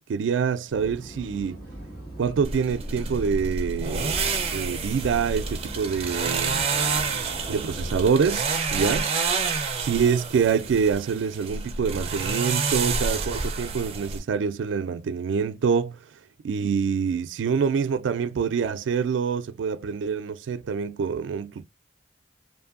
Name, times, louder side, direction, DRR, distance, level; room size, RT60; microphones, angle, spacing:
voice 1, 0.1-1.6 2.2-4.2 4.5-6.7 7.5-9.1 9.8-16.0 16.4-21.6, right 6 dB, 90° right, 0.3 m, -26 dB
sound 1, 0.7-8.1, right 1 dB, 55° left, 1.9 m, -41 dB
sound 2, 2.4-14.2, right 4 dB, 35° right, 0.5 m, -28 dB
Guitar, 6.7-10.4, left 4 dB, 85° left, 1.6 m, -50 dB
2.7 x 2.5 x 2.5 m
head